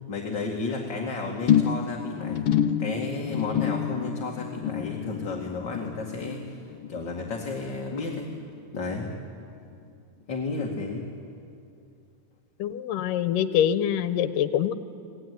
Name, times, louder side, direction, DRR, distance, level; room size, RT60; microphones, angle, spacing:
voice 1, 0.1-2.5 2.8-8.3 8.7-9.1 10.3-11.1, left 3 dB, 40° left, 0 dB, 2.5 m, -32 dB
sound 1, 1.5-8.1 8.3-8.8 9.1-9.2, left 9 dB, 65° left, 1.6 m, -28 dB
voice 2, 12.6-14.7, left 10 dB, 85° left, 11 dB, 2.6 m, -25 dB
30.0 x 20.5 x 9.5 m, 2.5 s
omnidirectional pair, 3.7 m